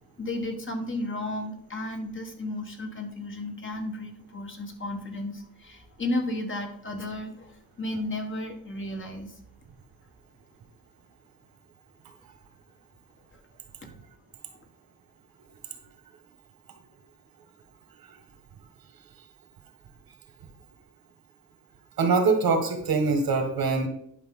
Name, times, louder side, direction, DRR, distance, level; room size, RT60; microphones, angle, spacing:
voice 1, 0.2-9.4 13.3-13.4, left 1 dB, 35° left, 4 dB, 1.4 m, -33 dB
voice 2, 22.0-23.9, right 4 dB, 80° right, 5 dB, 1.8 m, -23 dB
10.5 x 5.6 x 3.8 m, 0.70 s
wide cardioid pair, 135°, 35 cm